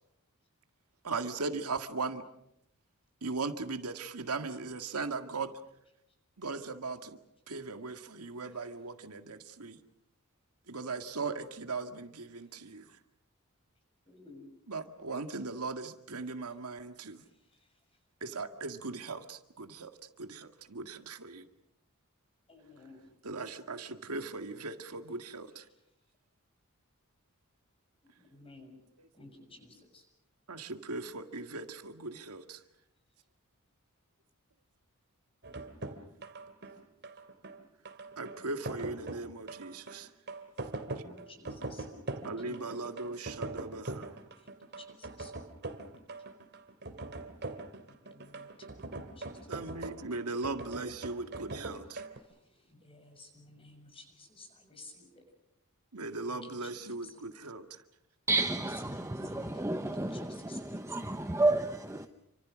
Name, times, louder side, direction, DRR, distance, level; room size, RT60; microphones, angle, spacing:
voice 1, 1.0-2.2 3.2-5.5 6.4-7.2 7.5-9.8 10.7-13.0 14.7-17.2 18.2-21.5 23.2-25.7 29.0-29.1 30.5-32.6 38.2-40.1 42.2-44.2 49.5-52.1 55.9-57.8, right 3 dB, 85° right, 2.0 m, -38 dB
voice 2, 14.1-14.5 17.2-17.7 22.5-23.0 28.3-28.8 29.1-30.0 40.7-41.8 42.2-42.8 44.4-45.3 47.8-48.8 49.2-49.3 52.3-55.2 56.3-57.1 58.3-60.9, left 2 dB, 25° left, 6.8 m, -54 dB
sound 1, 35.4-52.2, right 2 dB, 50° right, 2.6 m, -42 dB
voice 3, 58.3-62.1, right 2 dB, 10° right, 0.9 m, -31 dB
29.0 x 26.0 x 6.3 m
head